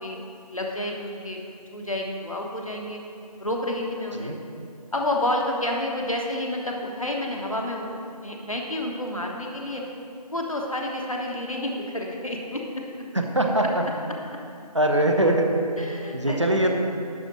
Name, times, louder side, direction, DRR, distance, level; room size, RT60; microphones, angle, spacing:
voice 1, 0.5-1.4 1.7-3.0 3.4-4.3 4.9-9.8 10.3-12.8 15.8-16.4, left 1 dB, 55° left, 0 dB, 1.3 m, -29 dB
voice 2, 13.1-13.8 14.7-15.5 16.1-16.7, right 1 dB, 45° right, 2 dB, 0.8 m, -22 dB
11.0 x 4.5 x 6.2 m, 2.5 s
figure-of-eight pair, 175°, 21 cm